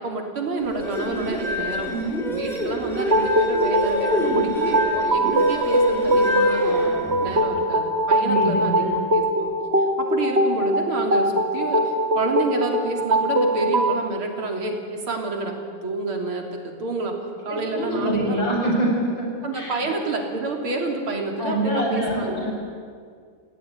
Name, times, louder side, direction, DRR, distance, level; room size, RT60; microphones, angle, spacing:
voice 1, 0.0-9.5 10.0-15.5 15.8-17.1 17.4-18.7 19.4-22.4, right 3 dB, 70° right, 2 dB, 4.0 m, -29 dB
sound 1, 0.6-7.4, equal, ahead, 5.5 m, -28 dB
sound 2, 2.9-14.0, equal, 30° right, 1.7 m, -22 dB
voice 2, 8.2-9.0 17.7-19.3 19.5-19.9 21.4-22.5, right 1 dB, 55° left, -1 dB, 7.0 m, -24 dB
28.5 x 17.0 x 9.5 m, 2.1 s
omnidirectional pair, 2.4 m